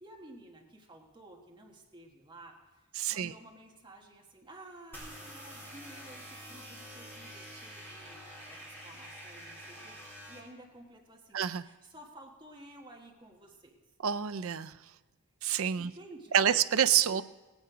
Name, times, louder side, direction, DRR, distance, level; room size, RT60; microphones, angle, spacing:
voice 1, 0.0-13.8 15.7-16.6, right 1 dB, 20° right, 0 dB, 1.4 m, -53 dB
voice 2, 3.0-3.3 11.3-11.6 14.0-14.7 15.4-15.9 16.3-17.2, right 9 dB, 70° right, 12 dB, 0.5 m, -27 dB
sound 1, 4.9-10.4, equal, 10° left, 2.9 m, -47 dB
18.0 x 9.6 x 4.9 m, 1.2 s
head